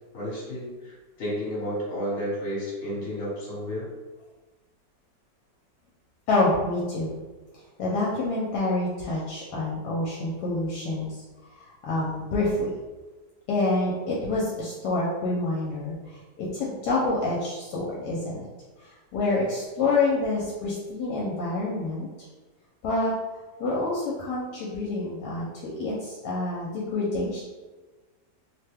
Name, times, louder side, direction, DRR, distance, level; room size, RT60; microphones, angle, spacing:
voice 1, 0.1-3.9, equal, 40° left, -7 dB, 1.3 m, -32 dB
voice 2, 6.3-7.1 7.5-11.2 11.6-12.8 13.5-18.5 18.8-22.1 22.8-23.1 23.6-27.4, left 2 dB, 75° left, -5 dB, 1.1 m, -27 dB
3.0 x 2.2 x 3.3 m, 1.2 s
omnidirectional pair, 1.9 m